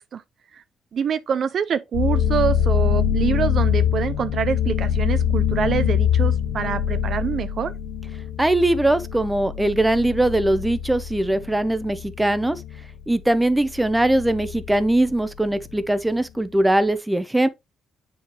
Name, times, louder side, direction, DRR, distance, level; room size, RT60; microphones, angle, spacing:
voice 1, 0.9-7.7, right 7 dB, 55° right, 0.4 m, -25 dB
sound 1, 1.9-15.8, left 9 dB, 85° left, 0.6 m, -24 dB
voice 2, 8.4-12.6 13.1-17.5, right 1 dB, 10° right, 0.6 m, -21 dB
7.0 x 4.7 x 2.8 m
cardioid pair, 90°, 0 cm